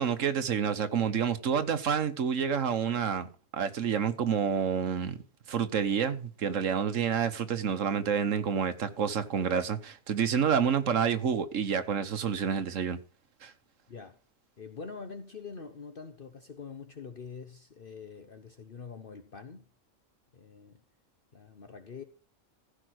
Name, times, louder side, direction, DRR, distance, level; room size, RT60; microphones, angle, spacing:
voice 1, 0.0-5.2 5.5-13.0 13.4-13.5, right 7 dB, 80° right, 1.5 m, -28 dB
voice 2, 13.9-14.2 14.6-19.7 20.3-20.8 21.3-22.0, left 5 dB, 45° left, 1.1 m, -45 dB
15.0 x 5.1 x 6.3 m
omnidirectional pair, 1.3 m